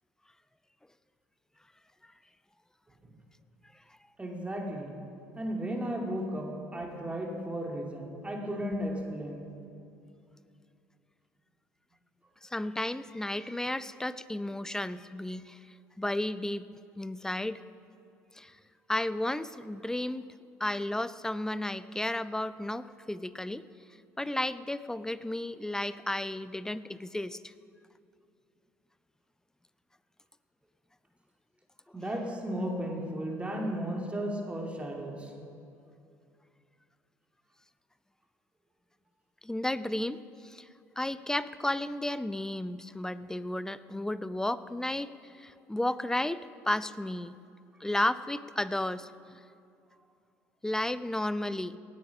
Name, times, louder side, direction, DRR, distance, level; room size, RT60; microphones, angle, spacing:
voice 1, 4.2-5.0 5.4-9.5 31.9-35.3, equal, 15° right, 0 dB, 2.7 m, -34 dB
voice 2, 12.4-15.6 16.0-16.7 17.0-17.6 18.4-18.5 18.9-20.2 20.6-23.6 24.2-27.5 39.4-40.7 41.0-47.4 47.8-49.4 50.6-51.8, left 1 dB, 5° left, 15 dB, 0.5 m, -33 dB
18.0 x 9.5 x 6.1 m, 2.5 s
hypercardioid pair, 55°, 8 cm